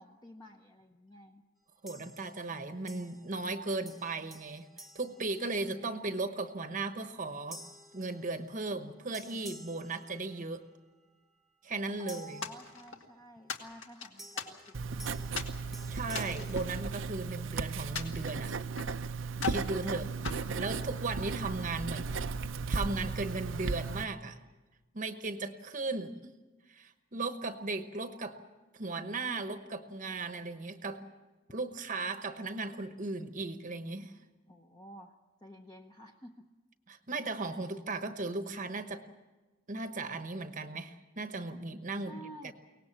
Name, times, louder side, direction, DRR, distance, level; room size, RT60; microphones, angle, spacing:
voice 1, 0.0-1.4 12.0-15.7 19.7-20.1 34.5-36.5 41.9-42.5, right 1 dB, 20° left, 2 dB, 0.9 m, -51 dB
voice 2, 1.8-7.6 7.9-10.6 11.6-12.4 15.9-18.5 19.4-20.1 20.6-22.2 22.7-24.4 24.9-26.3 26.7-28.4 28.7-31.1 31.5-34.2 36.9-39.0 39.7-42.2 42.4-42.5, right 3 dB, 35° right, 8 dB, 1.0 m, -37 dB
sound 1, 1.9-2.5 2.9-3.6 3.9-6.0 6.5-6.8 7.5-8.8 9.1-10.8 12.1-13.2 14.2-17.4, equal, ahead, 1.1 m, -53 dB
sound 2, 12.4-13.1 13.5-14.9 15.4-15.6 16.1-17.4 18.0-19.0 19.4-19.7 20.2-21.3, left 5 dB, 60° left, 1.9 m, -40 dB
Writing, 14.7-24.0, right 4 dB, 60° right, 0.7 m, -36 dB
23.5 x 18.5 x 7.4 m, 1.2 s
head